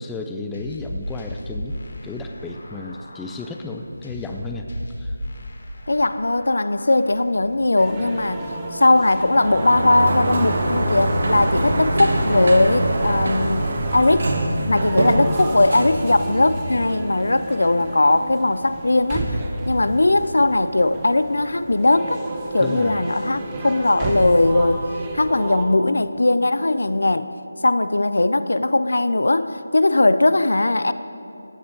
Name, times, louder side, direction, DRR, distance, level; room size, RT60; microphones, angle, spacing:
voice 1, 0.0-4.7 5.0-5.1 22.6-23.0, left 3 dB, 5° left, 3 dB, 0.5 m, -33 dB
sound 1, 0.5-7.5, left 1 dB, 55° left, 3.0 m, -36 dB
voice 2, 5.9-8.4 8.7-14.3 14.7-19.3 19.7-22.2 22.5-24.9 25.1-27.3 27.6-30.9, left 2 dB, 80° left, 13 dB, 0.6 m, -19 dB
sound 2, 7.8-25.7, right 2 dB, 15° right, 1.1 m, -32 dB
Sliding door, 9.2-17.0, right 1 dB, 55° right, 2.0 m, -24 dB
17.5 x 14.0 x 4.0 m, 2.6 s
figure-of-eight pair, 170°, 0 cm